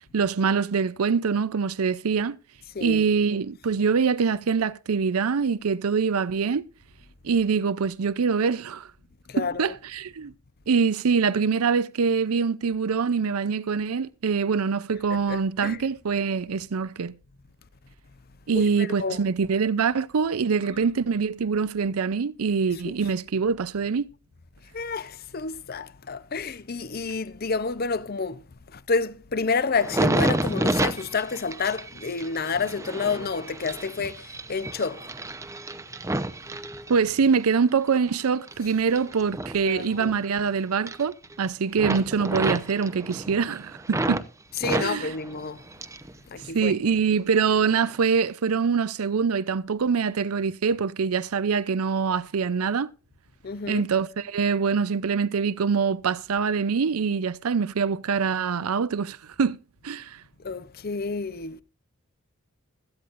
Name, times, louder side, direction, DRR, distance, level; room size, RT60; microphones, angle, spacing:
voice 1, 0.1-2.4 2.8-6.7 7.2-8.9 9.4-10.3 10.7-17.1 18.5-24.1 36.9-44.2 44.8-45.1 46.5-52.9 53.7-59.6 59.8-60.2, right 5 dB, 90° right, 0.5 m, -24 dB
voice 2, 9.3-9.7 15.1-15.9 18.5-19.2 20.7-20.9 22.7-22.8 24.7-35.1 39.6-40.1 44.6-45.6 46.3-46.7 53.4-53.8 60.4-61.6, left 4 dB, 45° left, 0.7 m, -29 dB
sound 1, 29.8-37.4 37.9-40.5 40.7-41.5 41.8-44.3 44.6-46.1 46.4-47.2 47.7-47.9, right 1 dB, 15° right, 0.7 m, -30 dB
16.5 x 14.5 x 2.5 m
head